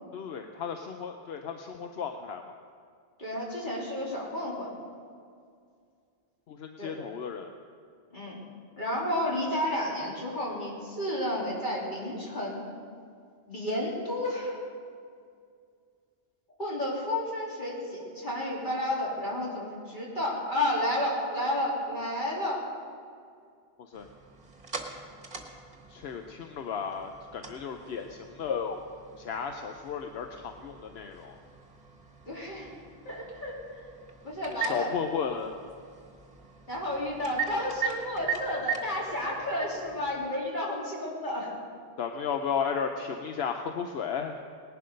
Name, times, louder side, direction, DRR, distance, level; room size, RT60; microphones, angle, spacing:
voice 1, 0.1-2.4 6.5-7.5 23.8-24.1 25.9-28.8 29.1-31.3 34.6-35.5 42.0-44.4, left 6 dB, 80° left, 5 dB, 1.0 m, -34 dB
voice 2, 3.2-4.7 6.8-7.0 8.1-8.4 8.8-12.6 13.5-14.6 16.6-22.6 32.3-32.7 33.1-33.8 34.2-34.9 36.7-41.5, left 1 dB, 50° left, -5 dB, 3.6 m, -31 dB
sound 1, 23.9-40.3, right 6 dB, 45° right, 1.6 m, -40 dB
19.0 x 11.5 x 5.3 m, 2.3 s
omnidirectional pair, 1.0 m